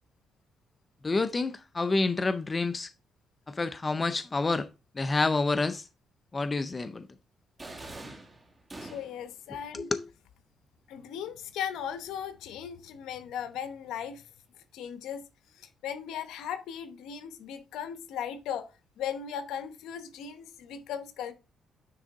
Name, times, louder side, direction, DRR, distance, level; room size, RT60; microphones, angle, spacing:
voice 1, 1.0-2.9 3.5-4.7 5.0-5.9 6.3-7.1 9.7-10.1, left 3 dB, 25° left, 0.5 m, -28 dB
sound 1, 7.6-9.3, right 2 dB, 20° right, 2.4 m, -44 dB
voice 2, 8.8-9.9 10.9-14.2 14.7-15.2 15.5-18.7 19.0-21.3, left 8 dB, 85° left, 0.9 m, -37 dB
9.9 x 3.6 x 3.5 m
cardioid pair, 90°, 0 cm